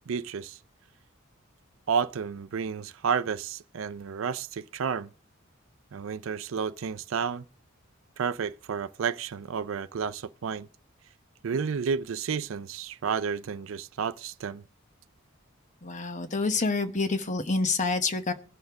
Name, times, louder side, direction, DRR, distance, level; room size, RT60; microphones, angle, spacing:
voice 1, 0.1-0.6 1.9-5.1 5.9-7.4 8.2-10.7 11.4-14.6, right 6 dB, 65° right, 0.4 m, -31 dB
voice 2, 15.8-18.3, left 3 dB, 35° left, 0.9 m, -27 dB
17.5 x 6.5 x 3.5 m
head